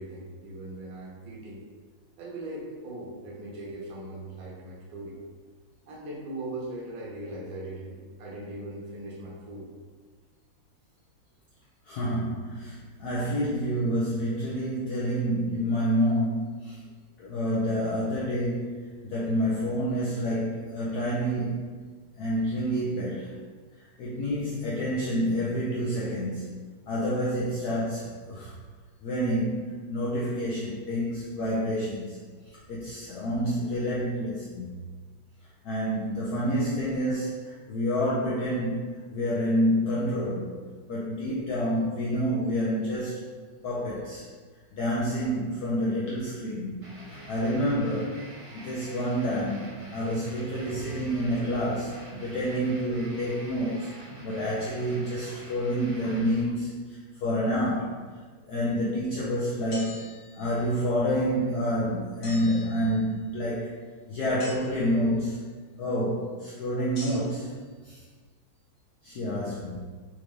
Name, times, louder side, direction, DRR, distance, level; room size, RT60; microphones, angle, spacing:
voice 1, 0.0-1.6 2.2-5.2 5.9-9.7 40.1-40.2, right 1 dB, 65° right, -4 dB, 1.5 m, -39 dB
voice 2, 11.9-16.8 17.2-18.7 19.0-21.7 22.2-23.3 24.0-26.6 26.9-28.5 29.0-32.2 32.7-34.7 35.6-40.5 40.9-43.3 43.6-44.2 44.8-46.8 47.3-48.2 48.5-52.0 52.2-53.9 54.2-56.8 57.2-58.0 58.5-60.0 60.4-63.7 64.1-65.5 65.8-67.5 67.8-68.0 69.0-69.8, equal, 85° left, -7 dB, 0.8 m, -28 dB
sound 1, 46.8-56.4, right 2 dB, 35° right, 1.0 m, -45 dB
sound 2, 59.7-60.7 62.2-63.3 64.4-65.1 66.9-67.5, left 1 dB, 65° left, 1.9 m, -45 dB
4.5 x 2.5 x 3.1 m, 1.5 s
omnidirectional pair, 2.4 m